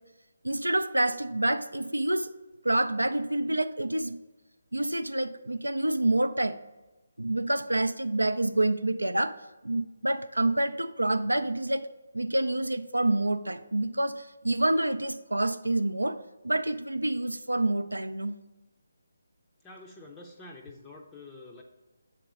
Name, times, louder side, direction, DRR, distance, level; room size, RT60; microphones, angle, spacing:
voice 1, 0.4-2.3 2.6-4.1 4.7-6.6 7.2-9.4 9.6-11.8 12.1-16.2 16.4-18.4, right 1 dB, 85° right, 11 dB, 0.4 m, -27 dB
voice 2, 19.6-21.6, left 2 dB, 10° left, -1 dB, 0.5 m, -47 dB
7.6 x 3.8 x 5.1 m, 1.1 s
figure-of-eight pair, 150°, 0 cm